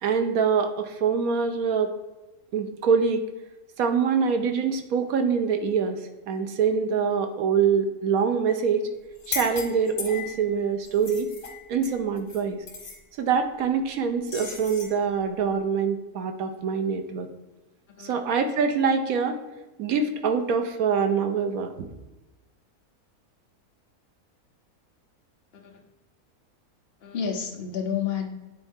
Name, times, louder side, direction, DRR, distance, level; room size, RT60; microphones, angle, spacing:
voice 1, 0.0-1.9 2.5-3.3 3.8-6.0 6.3-8.9 9.3-11.3 11.7-12.6 13.2-17.3 18.0-19.4 19.8-21.7, right 6 dB, 75° right, 7 dB, 1.1 m, -24 dB
sound 1, 9.2-10.4 10.8-12.4 12.7-13.0 14.3-14.9, left 5 dB, 90° left, 1.9 m, -36 dB
voice 2, 27.0-28.3, left 7 dB, 45° left, 3 dB, 1.1 m, -30 dB
9.1 x 4.0 x 3.6 m, 1.1 s
omnidirectional pair, 1.6 m